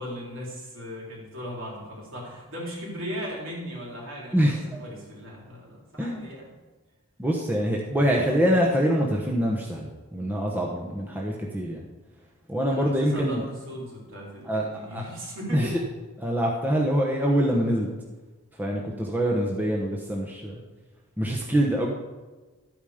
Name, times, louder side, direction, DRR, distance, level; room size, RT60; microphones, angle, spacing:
voice 1, 0.0-4.5 4.8-6.5 12.6-15.7, equal, 60° right, -3 dB, 3.8 m, -37 dB
voice 2, 4.3-4.8 6.0-6.2 7.2-11.8 12.5-13.4 14.4-14.6 14.9-15.0 15.5-15.8 16.2-17.9 18.6-20.6 21.2-21.9, equal, 10° right, -2 dB, 1.0 m, -25 dB
12.0 x 9.1 x 5.1 m, 1.3 s
head